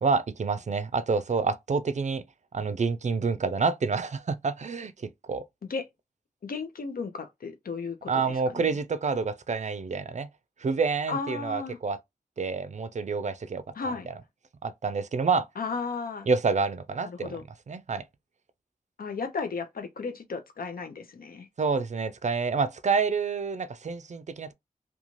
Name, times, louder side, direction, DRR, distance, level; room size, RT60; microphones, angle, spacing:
voice 1, 0.0-2.2 2.5-5.5 8.1-10.3 10.6-12.0 12.4-13.6 14.6-15.5 16.3-17.3 17.7-18.0 21.6-24.5, right 4 dB, 55° right, 0.4 m, -28 dB
voice 2, 6.4-8.7 11.1-11.8 13.7-14.1 15.6-16.3 17.0-17.4 19.0-21.5, left 4 dB, 85° left, 0.6 m, -34 dB
2.5 x 2.3 x 3.0 m
wide cardioid pair, 90°, 15 cm